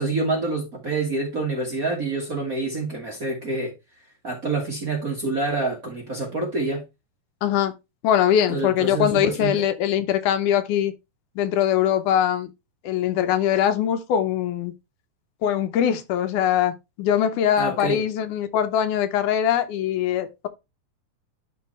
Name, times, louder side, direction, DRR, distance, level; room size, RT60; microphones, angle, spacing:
voice 1, 0.0-3.7 4.2-6.8 8.5-9.6 17.6-18.0, right 3 dB, 40° right, 1.3 m, -27 dB
voice 2, 7.4-7.7 8.0-10.9 11.4-12.5 12.8-14.7 15.4-20.5, left 10 dB, 80° left, 2.2 m, -22 dB
11.5 x 3.8 x 3.2 m
omnidirectional pair, 3.6 m